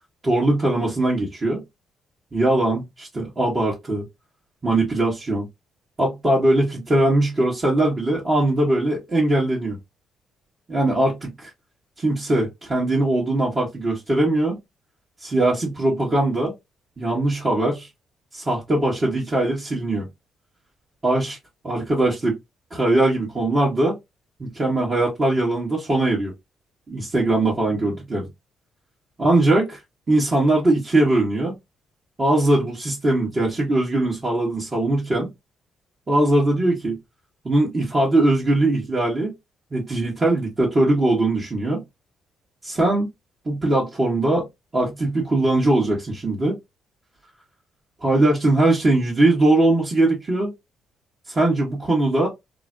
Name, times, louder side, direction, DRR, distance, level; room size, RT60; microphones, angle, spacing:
voice 1, 0.2-1.6 2.3-4.0 4.6-5.5 6.0-9.8 10.7-11.5 12.0-14.6 15.2-16.5 17.0-17.9 18.3-20.1 21.0-21.4 21.6-22.3 22.7-23.9 24.4-26.3 26.9-28.3 29.2-29.7 30.1-31.5 32.2-35.3 36.1-37.0 37.4-39.3 39.7-41.8 42.6-43.1 43.4-44.4 44.7-46.6 48.0-50.5 51.3-52.3, right 2 dB, 35° right, 1.3 m, -20 dB
3.1 x 2.1 x 2.5 m
hypercardioid pair, 50°, 0 cm